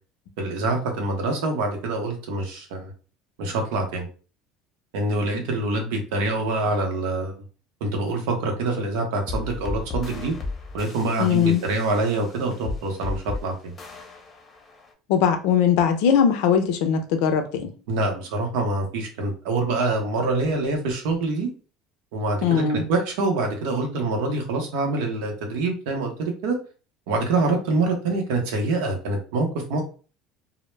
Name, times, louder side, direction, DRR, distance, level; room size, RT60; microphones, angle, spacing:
voice 1, 0.4-2.9 3.4-4.1 4.9-7.3 7.8-10.3 10.7-13.7 17.9-21.5 22.1-26.6 27.1-29.8, right 2 dB, 80° right, 0.7 m, -25 dB
sound 1, 9.3-14.9, left 3 dB, 25° left, 0.6 m, -35 dB
voice 2, 11.2-11.6 15.1-17.7 22.4-22.8, left 7 dB, 75° left, 0.4 m, -20 dB
2.1 x 2.0 x 3.1 m
supercardioid pair, 110°, 0 cm